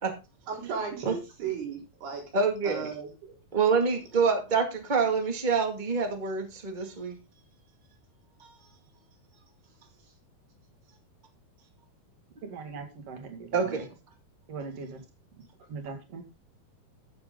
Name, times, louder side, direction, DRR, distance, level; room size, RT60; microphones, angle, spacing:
voice 1, 0.5-2.2 2.6-3.3, right 6 dB, 80° right, 0 dB, 6.1 m, -35 dB
voice 2, 2.3-2.9 3.5-7.2 8.4-8.5 13.5-13.9, right 5 dB, 25° right, 4 dB, 1.0 m, -26 dB
voice 3, 12.4-13.8 14.5-15.0 15.7-16.2, right 4 dB, 45° right, 5 dB, 2.7 m, -40 dB
14.0 x 7.3 x 3.8 m, 0.28 s
omnidirectional pair, 4.6 m